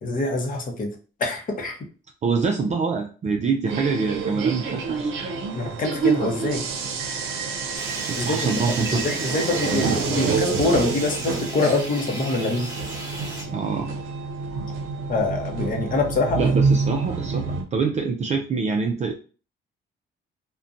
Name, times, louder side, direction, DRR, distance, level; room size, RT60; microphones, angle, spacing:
voice 1, 0.0-0.9 1.2-1.8 5.6-6.6 8.2-8.5 9.0-12.7 15.1-16.4, left 3 dB, 45° left, 2 dB, 0.7 m, -25 dB
voice 2, 2.2-5.1 8.1-9.0 9.7-9.8 13.5-13.9 16.4-17.4 17.7-19.1, right 5 dB, 35° right, 2 dB, 0.3 m, -25 dB
sound 1, 3.7-17.6, right 4 dB, 90° right, 0.6 m, -27 dB
sound 2, 7.8-13.4, right 1 dB, 20° right, 0.9 m, -36 dB
2.5 x 2.2 x 2.5 m, 0.36 s
cardioid pair, 90°, 20 cm